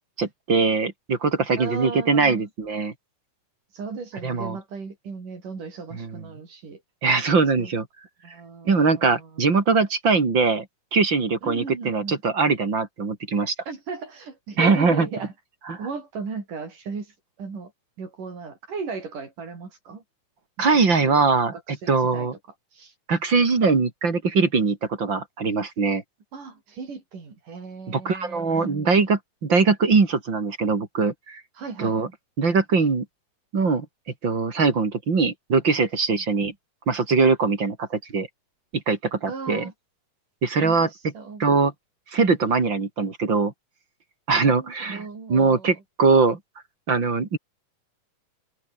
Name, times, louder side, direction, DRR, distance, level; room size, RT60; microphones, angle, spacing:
voice 1, 0.2-2.9 4.2-4.6 5.9-6.2 7.0-7.9 8.7-10.7 10.9-13.6 14.6-15.1 15.7-15.8 20.6-21.5 21.9-22.3 23.1-26.0 27.9-31.4 31.8-32.1 32.4-33.1 33.5-33.9 34.2-36.5 36.9-38.3 38.7-39.7 40.4-40.9 41.4-41.7 42.1-43.5 44.3-46.4 46.9-47.4, right 4 dB, 35° right, 3.5 m, -22 dB
voice 2, 1.6-2.5 3.7-6.8 7.6-7.7 8.2-9.4 11.4-12.2 13.7-15.3 15.8-17.7 18.0-20.0 20.6-20.7 21.0-21.2 21.7-22.3 22.7-22.9 26.3-28.9 31.6-32.0 36.1-36.2 39.3-39.7 40.6-41.5 44.4-45.7, right 5 dB, 70° right, 6.8 m, -36 dB
omnidirectional pair, 3.8 m